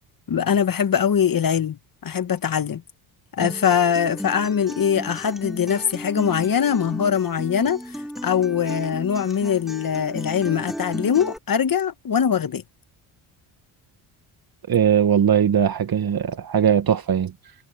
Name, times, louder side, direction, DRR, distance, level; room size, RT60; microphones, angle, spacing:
voice 1, 0.3-2.8 3.3-7.8 8.2-12.6, left 8 dB, 40° left, 1.6 m, -22 dB
Acoustic guitar, 3.4-11.4, equal, ahead, 3.5 m, -35 dB
voice 2, 14.7-17.3, right 8 dB, 45° right, 1.6 m, -19 dB
supercardioid pair, 70°, 50 cm